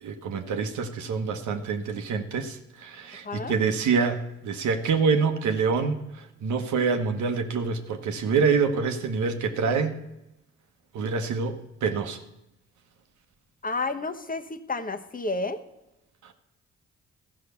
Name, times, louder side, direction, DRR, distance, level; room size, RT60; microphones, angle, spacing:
voice 1, 0.0-9.9 10.9-12.2 16.2-16.3, right 5 dB, 80° right, 6 dB, 1.1 m, -26 dB
voice 2, 13.6-15.6, left 3 dB, 30° left, 7 dB, 1.0 m, -31 dB
13.5 x 5.6 x 6.8 m, 0.91 s
supercardioid pair, 55°, 29 cm